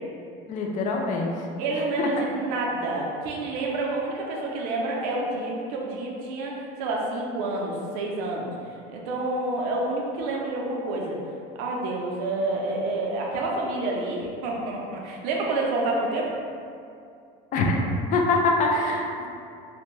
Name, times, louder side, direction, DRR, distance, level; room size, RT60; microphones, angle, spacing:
voice 1, 0.5-1.3 2.0-2.2 17.5-19.3, left 2 dB, 40° left, 0 dB, 0.4 m, -24 dB
voice 2, 1.6-11.2 11.6-16.3, right 2 dB, 90° right, -2 dB, 0.6 m, -28 dB
2.5 x 2.2 x 3.1 m, 2.5 s
cardioid pair, 145°, 20 cm